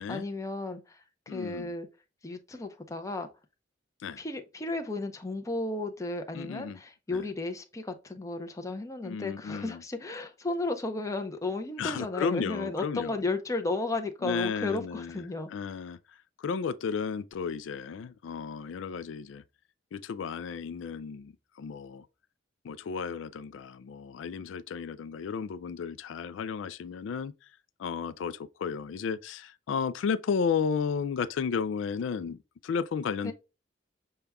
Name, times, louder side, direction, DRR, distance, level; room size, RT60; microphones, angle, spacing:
voice 1, 0.0-1.9 2.2-3.3 4.2-15.5 33.2-33.3, left 2 dB, 15° left, 0.5 m, -34 dB
voice 2, 1.3-1.7 4.0-4.2 6.3-6.8 7.1-7.3 9.0-9.8 11.8-13.2 14.2-15.2 15.5-19.4 19.9-22.1 22.6-27.3 27.8-33.3, left 6 dB, 80° left, 0.3 m, -33 dB
6.7 x 2.3 x 3.4 m
head